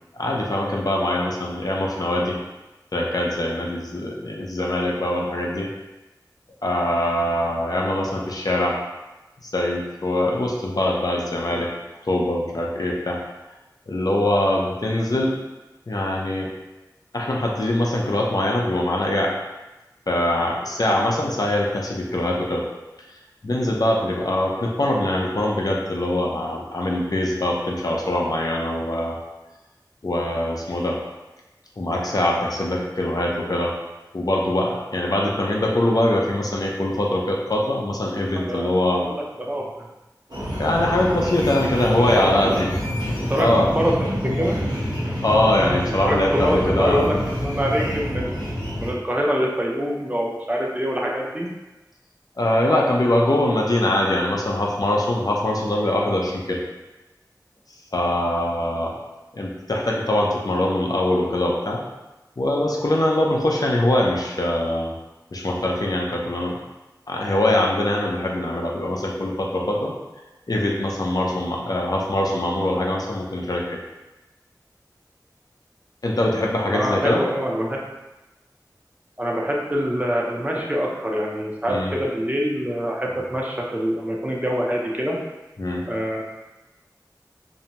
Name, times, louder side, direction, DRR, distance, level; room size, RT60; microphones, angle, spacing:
voice 1, 0.1-2.4 2.9-5.7 6.6-8.8 9.4-11.7 12.1-13.2 13.9-15.4 15.9-16.5 17.1-19.3 20.1-22.6 23.4-29.2 30.0-31.0 31.8-33.7 34.1-39.1 40.6-42.7 43.1-43.7 45.2-47.1 52.4-56.6 57.9-58.9 59.3-61.8 62.4-64.9 65.3-66.6 67.1-69.9 70.5-73.8 76.0-77.2 81.7-82.0 85.6-85.9, left 1 dB, 55° left, -2 dB, 0.5 m, -23 dB
voice 2, 38.4-38.7 39.0-39.6 42.0-42.6 43.3-43.5 43.7-44.6 46.0-48.4 48.8-51.5 76.7-77.8 79.2-85.2 85.9-86.2, equal, 20° right, -2 dB, 0.5 m, -25 dB
sound 1, 40.3-48.9, equal, 85° right, 1.1 m, -27 dB
2.6 x 2.1 x 2.9 m, 1.0 s
wide cardioid pair, 40°, 7 cm